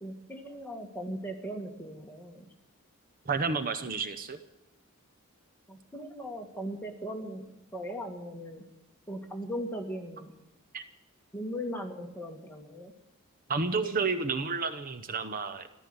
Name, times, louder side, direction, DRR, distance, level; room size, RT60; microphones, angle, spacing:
voice 1, 0.0-2.5 5.7-7.4 7.7-8.6 9.1-10.3 11.3-12.9, equal, 10° left, 1 dB, 2.0 m, -38 dB
voice 2, 3.3-4.4 10.7-10.8 13.5-15.7, right 4 dB, 40° right, 10 dB, 0.8 m, -30 dB
14.5 x 12.5 x 7.9 m, 0.96 s
head